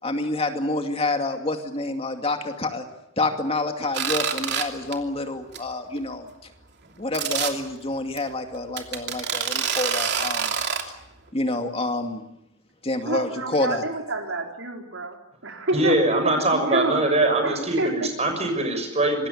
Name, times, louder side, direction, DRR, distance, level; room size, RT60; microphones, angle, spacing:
voice 1, 0.0-2.8 3.2-6.3 7.0-10.5 11.3-12.2 12.8-13.8, left 2 dB, 30° left, 5 dB, 2.5 m, -27 dB
sound 1, 3.9-4.6 4.9-5.2 5.5-5.6 6.0-6.1 7.1-7.5 8.2-8.3 8.8-10.8, right 7 dB, 60° right, 2.9 m, -26 dB
voice 2, 13.1-15.2 15.4-18.1, right 2 dB, 80° right, 3 dB, 4.2 m, -28 dB
voice 3, 15.7-19.3, right 2 dB, 35° right, 6 dB, 6.5 m, -22 dB
26.0 x 20.5 x 8.6 m, 0.78 s
head